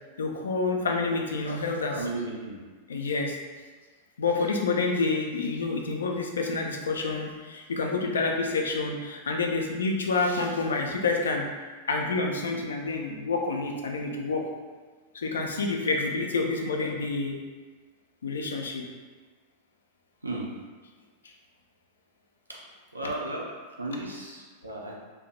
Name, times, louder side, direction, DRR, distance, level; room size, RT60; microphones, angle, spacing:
voice 1, 0.2-1.9 2.9-3.4 4.2-11.5 11.9-14.4 15.1-17.4 18.2-18.8, left 3 dB, 70° left, 2 dB, 0.4 m, -28 dB
voice 2, 1.9-2.6 20.2-20.5 22.9-23.5 23.8-24.9, right 2 dB, 85° right, -3 dB, 0.5 m, -34 dB
3.3 x 2.7 x 2.3 m, 1.4 s
figure-of-eight pair, 90°, 0 cm